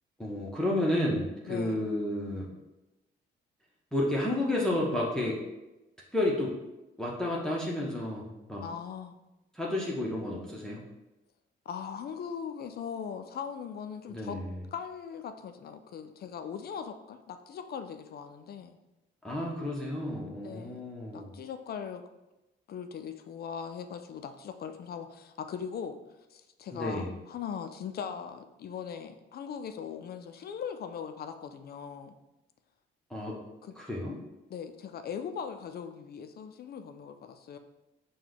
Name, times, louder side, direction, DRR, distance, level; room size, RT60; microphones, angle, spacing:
voice 1, 0.2-2.5 3.9-5.4 6.1-6.5 7.0-8.6 9.5-10.8 14.1-14.5 19.2-21.3 26.7-27.1 33.1-33.4 33.8-34.2, left 1 dB, 5° left, -4 dB, 0.8 m, -31 dB
voice 2, 1.5-1.8 8.6-9.2 11.7-14.4 14.7-18.8 20.4-20.8 21.1-22.0 22.7-26.0 26.3-32.2 33.6-33.7 34.5-37.6, left 7 dB, 50° left, 8 dB, 0.4 m, -40 dB
4.6 x 2.2 x 3.9 m, 0.99 s
cardioid pair, 90°, 20 cm